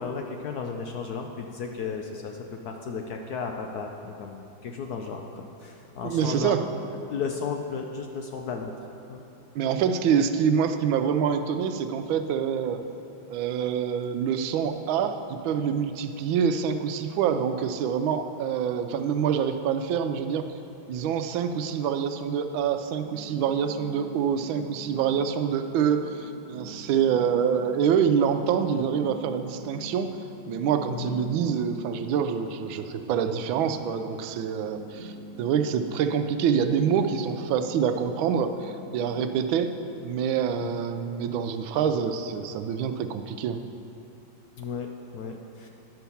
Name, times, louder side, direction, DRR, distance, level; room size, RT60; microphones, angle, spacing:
voice 1, 0.0-6.6 7.1-8.7 9.1-9.2 30.9-31.2 40.6-40.8 44.6-45.7, left 5 dB, 70° left, 3 dB, 0.9 m, -34 dB
voice 2, 6.0-6.6 9.5-12.8 13.3-20.5 20.9-30.1 30.5-35.1 35.4-39.7 40.0-43.6, right 7 dB, 85° right, 8 dB, 1.4 m, -26 dB
sound 1, 23.0-40.0, equal, 40° right, 1.2 m, -45 dB
10.0 x 5.8 x 6.9 m, 2.7 s
omnidirectional pair, 2.1 m